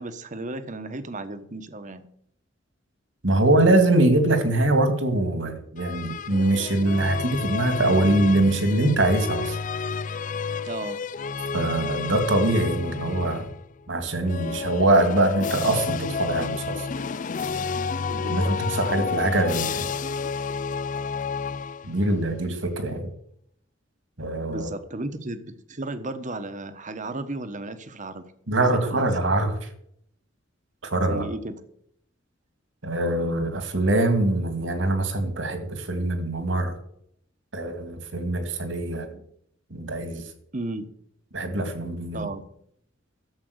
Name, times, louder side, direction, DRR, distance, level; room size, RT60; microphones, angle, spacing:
voice 1, 0.0-2.1 10.6-11.0 18.1-18.9 24.5-28.2 28.6-29.0 31.0-31.6 39.1-39.2 40.5-40.9 42.1-42.4, right 2 dB, 40° right, 10 dB, 1.2 m, -34 dB
voice 2, 3.2-9.6 11.5-13.5 13.9-16.9 18.3-19.9 21.8-23.1 24.2-24.7 28.5-29.7 30.8-31.3 32.8-36.7 37.5-39.1 39.7-40.2 41.3-42.3, right 2 dB, 70° right, 8 dB, 2.3 m, -23 dB
sound 1, 5.8-13.6 14.2-22.2, left 5 dB, 40° left, 0.4 m, -30 dB
13.0 x 7.6 x 8.0 m, 0.70 s
head